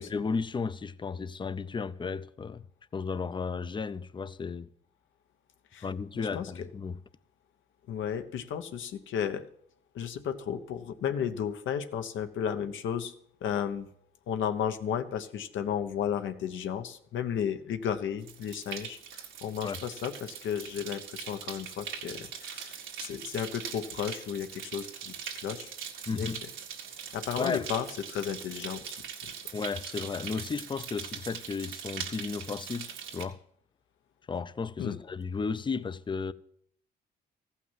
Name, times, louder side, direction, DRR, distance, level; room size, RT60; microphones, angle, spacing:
voice 1, 0.0-2.6 2.9-4.7 5.8-7.0 19.6-19.8 26.1-26.4 27.4-27.7 29.5-33.4 34.3-36.3, left 5 dB, 25° left, 0.5 m, -34 dB
voice 2, 6.1-6.7 7.9-9.5 9.9-13.1 13.4-13.9 14.3-25.7 26.1-26.3 27.1-29.0 29.2-29.3 34.8-35.0, left 8 dB, 75° left, 1.0 m, -33 dB
sound 1, 18.2-33.2, right 7 dB, 85° right, 1.8 m, -41 dB
15.0 x 5.8 x 7.4 m
cardioid pair, 90°, 20 cm